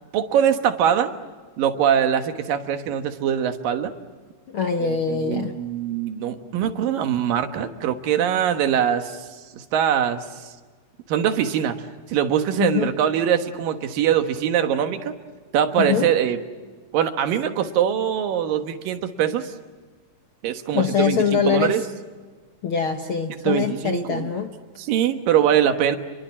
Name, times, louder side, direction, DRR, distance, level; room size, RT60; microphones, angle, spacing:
voice 1, 0.1-1.1 1.6-3.9 4.8-9.3 9.5-10.5 11.1-11.8 12.1-15.1 15.5-16.4 16.9-19.5 20.4-21.8 23.4-24.3 24.8-26.0, right 9 dB, 90° right, 7 dB, 3.1 m, -22 dB
voice 2, 4.5-5.5 12.6-12.9 15.8-16.1 20.7-21.8 22.6-24.5, left 7 dB, 60° left, 5 dB, 1.4 m, -23 dB
29.5 x 22.5 x 7.4 m, 1.4 s
omnidirectional pair, 3.8 m